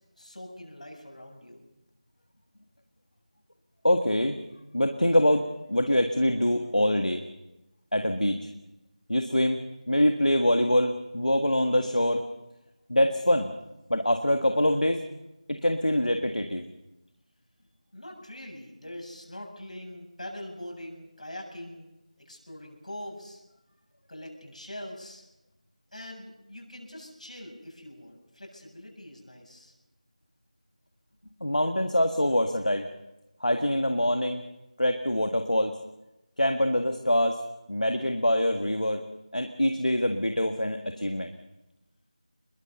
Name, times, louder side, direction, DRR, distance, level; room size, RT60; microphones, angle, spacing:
voice 1, 0.2-1.6 17.9-21.9 22.2-23.4 24.1-25.2 25.9-29.7, left 1 dB, 65° left, 1 dB, 7.8 m, -43 dB
voice 2, 3.8-4.4 4.7-7.2 7.9-8.5 9.1-12.2 12.9-13.5 13.9-15.0 15.5-16.6 31.4-32.9 33.4-34.4 34.8-35.8 36.4-37.4 37.7-39.0 39.3-41.3, left 1 dB, 80° left, 5 dB, 1.8 m, -24 dB
24.0 x 22.0 x 5.5 m, 0.94 s
figure-of-eight pair, 170°, 4 cm